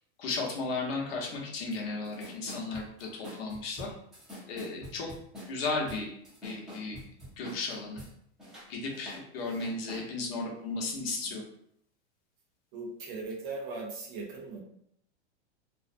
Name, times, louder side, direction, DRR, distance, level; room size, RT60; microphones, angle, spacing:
voice 1, 0.2-3.9 4.5-5.1 5.5-6.1 6.4-7.0 7.4-8.0 8.7-11.4, left 3 dB, 60° left, -1 dB, 0.8 m, -34 dB
sound 1, 1.7-1.8 2.0-8.1 8.4-10.1, equal, ahead, 0.6 m, -46 dB
voice 2, 12.7-14.6, right 3 dB, 45° right, 0 dB, 0.7 m, -39 dB
2.5 x 2.0 x 2.5 m, 0.71 s
supercardioid pair, 150°, 33 cm